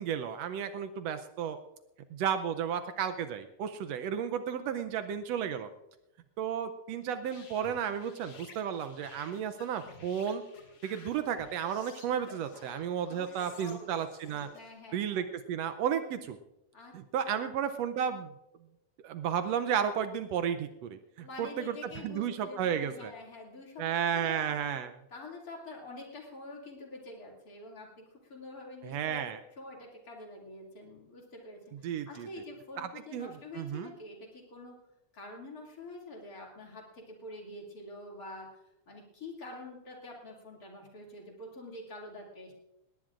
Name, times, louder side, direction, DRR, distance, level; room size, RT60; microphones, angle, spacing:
voice 1, 0.0-1.6 2.1-5.7 6.4-10.4 10.8-14.5 14.9-16.4 16.9-18.3 19.0-23.1 23.8-24.9 28.8-29.4 31.8-32.3 32.8-33.9, right 8 dB, 75° right, 10 dB, 1.6 m, -33 dB
sound 1, 7.2-14.7, left 4 dB, 50° left, 2.6 m, -54 dB
voice 2, 13.1-13.9 14.5-15.2 16.7-17.0 17.3-17.5 21.2-23.9 24.1-24.6 25.1-29.2 29.6-34.8 35.1-38.6 38.9-42.5, left 2 dB, 30° left, -1 dB, 2.7 m, -46 dB
19.0 x 18.0 x 2.5 m, 0.88 s
omnidirectional pair, 3.4 m